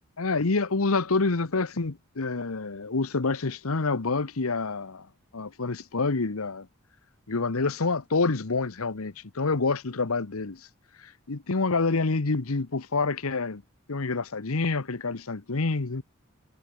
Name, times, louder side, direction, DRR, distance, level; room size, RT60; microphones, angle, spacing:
voice 1, 0.2-5.1 5.3-6.7 7.3-10.7 11.0-13.6 13.9-16.0, left 3 dB, 80° left, 1.1 m, -27 dB
head